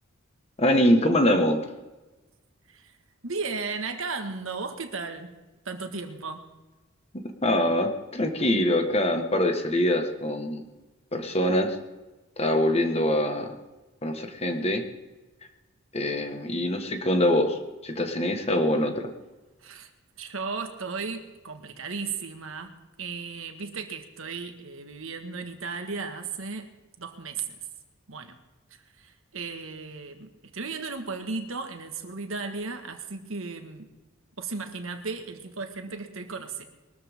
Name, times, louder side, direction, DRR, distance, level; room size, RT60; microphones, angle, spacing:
voice 1, 0.6-1.6 7.2-10.6 11.1-11.7 12.4-13.5 14.0-14.8 15.9-17.6 17.8-19.1, left 1 dB, 30° left, 6 dB, 1.5 m, -24 dB
voice 2, 3.2-5.3 5.6-6.5 19.6-19.9 20.2-26.7 27.0-27.5 28.1-28.4 29.0-33.9 34.4-36.6, right 4 dB, 75° right, 6 dB, 1.7 m, -35 dB
22.0 x 13.5 x 3.6 m, 1.1 s
head